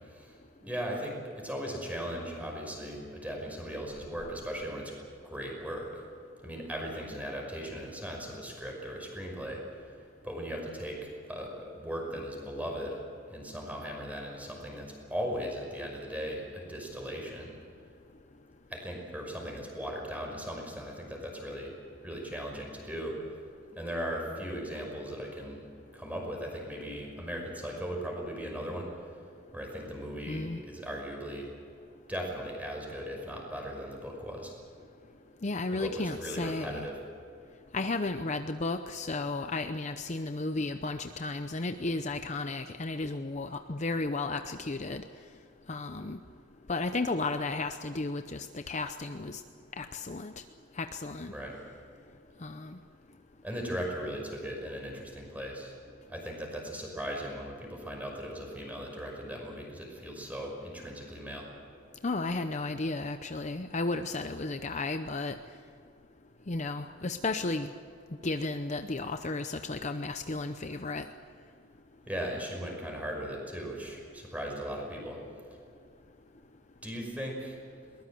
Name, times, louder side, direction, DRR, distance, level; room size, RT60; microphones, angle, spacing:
voice 1, 0.6-4.9 5.2-5.9 6.4-9.9 10.2-13.0 13.3-17.5 18.7-21.7 22.0-23.2 23.7-25.6 25.9-28.9 29.5-31.5 32.1-34.5 35.8-37.0 51.3-51.5 53.4-55.7 56.1-61.5 72.1-75.2 76.8-77.6, equal, 10° right, 1 dB, 5.6 m, -38 dB
voice 2, 30.3-30.6 35.4-36.9 37.7-45.0 45.7-46.2 46.7-49.4 49.8-50.3 50.8-51.3 52.4-52.8 62.0-65.4 66.5-67.7 68.2-71.1, left 3 dB, 35° left, 8 dB, 0.7 m, -33 dB
22.0 x 20.0 x 7.7 m, 2.4 s
head